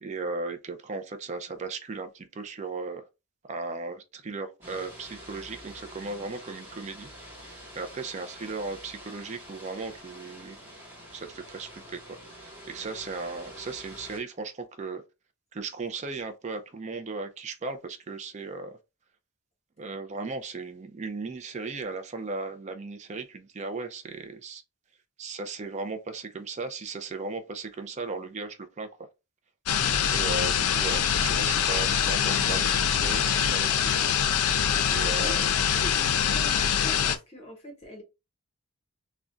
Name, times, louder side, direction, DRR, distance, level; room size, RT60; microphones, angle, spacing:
voice 1, 0.0-3.1 3.5-7.1 7.5-10.6 11.1-15.0 15.5-18.8 19.8-24.6 25.2-28.9 30.1-34.1 34.9-35.4, right 3 dB, 30° right, 0.3 m, -36 dB
sound 1, 4.6-14.2, equal, 10° right, 0.9 m, -46 dB
sound 2, 29.7-37.2, left 8 dB, 90° left, 0.4 m, -24 dB
voice 2, 35.7-38.0, equal, 25° left, 0.9 m, -42 dB
2.4 x 2.1 x 3.7 m
head